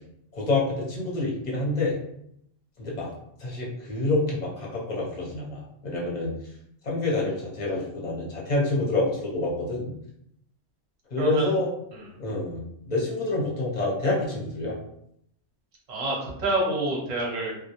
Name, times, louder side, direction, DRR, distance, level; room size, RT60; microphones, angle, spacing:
voice 1, 0.3-2.0 2.8-3.1 3.4-6.3 6.8-9.9 11.1-11.7 12.2-12.6 12.9-14.8, left 2 dB, 45° left, -4 dB, 0.7 m, -27 dB
voice 2, 11.2-11.5 11.9-12.1 15.9-17.5, right 2 dB, 45° right, -4 dB, 0.7 m, -27 dB
2.2 x 2.1 x 2.8 m, 0.74 s
omnidirectional pair, 1.3 m